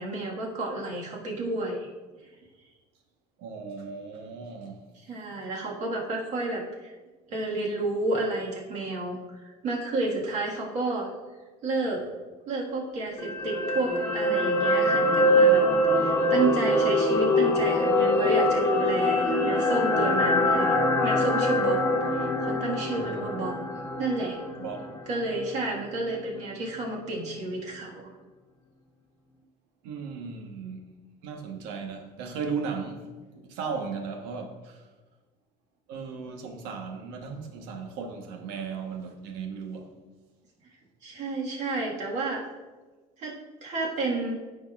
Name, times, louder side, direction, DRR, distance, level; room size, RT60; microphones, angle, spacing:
voice 1, 0.0-1.9 5.0-6.9 7.3-11.1 11.6-12.0 12.5-21.8 22.1-23.6 24.0-24.4 25.1-28.1 41.0-42.4 43.2-44.4, right 2 dB, 45° right, 1.8 m, -31 dB
voice 2, 3.4-4.9 22.9-23.2 24.6-24.8 29.8-30.9 31.2-33.1 33.5-34.9 35.9-39.9, right 5 dB, 90° right, 1.2 m, -36 dB
sound 1, 13.2-25.5 25.8-26.0, left 1 dB, 15° left, 0.8 m, -24 dB
13.0 x 5.3 x 2.5 m
cardioid pair, 170°, 17 cm